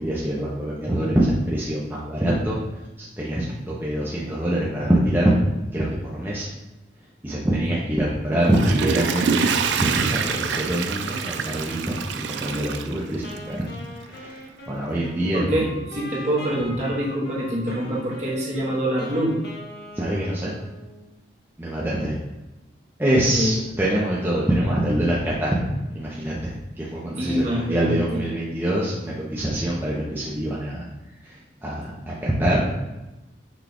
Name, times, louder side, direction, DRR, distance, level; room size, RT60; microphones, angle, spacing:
voice 1, 0.0-2.6 3.0-5.3 5.7-6.5 7.2-13.6 14.1-15.7 19.9-20.5 21.6-22.2 23.0-25.6 25.9-30.9 31.2-32.6, right 1 dB, 10° right, -7 dB, 0.5 m, -24 dB
Water / Toilet flush, 8.3-13.6 14.1-14.2, right 5 dB, 80° right, 0.3 m, -26 dB
Wind instrument woodwind instrument, 13.2-21.1, left 1 dB, 55° left, 0.7 m, -40 dB
voice 2, 15.2-19.4 23.4-23.5 27.2-28.2, right 1 dB, 40° right, -5 dB, 1.0 m, -25 dB
5.9 x 2.3 x 3.4 m, 1.0 s
head